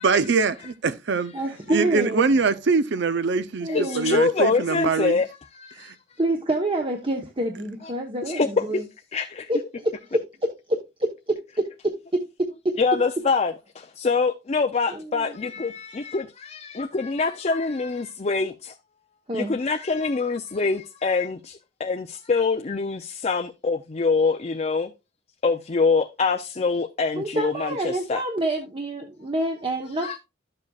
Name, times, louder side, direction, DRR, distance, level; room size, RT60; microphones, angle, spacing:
voice 1, 0.0-1.3 1.7-3.7 4.0-5.2 5.8-5.9, right 4 dB, 60° right, 0.6 m, -23 dB
voice 2, 1.3-2.2 3.6-4.2 6.2-8.8 9.5-10.2 10.7-10.8 14.9-15.4 19.3-19.6 27.2-30.2, right 1 dB, 25° right, 1.0 m, -27 dB
voice 3, 3.7-5.3 5.5-5.9 8.3-8.8 9.1-9.5 12.8-18.8 19.3-24.9 25.4-28.2 30.0-30.2, left 4 dB, 35° left, 0.5 m, -25 dB
12.0 x 7.5 x 2.4 m
head